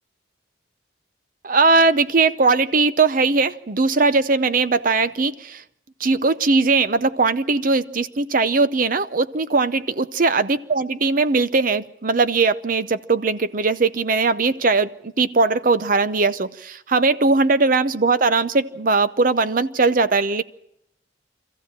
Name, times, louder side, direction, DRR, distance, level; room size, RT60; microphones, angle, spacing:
voice 1, 1.4-5.6 6.0-20.4, right 3 dB, 45° right, 0.7 m, -19 dB
25.0 x 14.5 x 7.5 m
head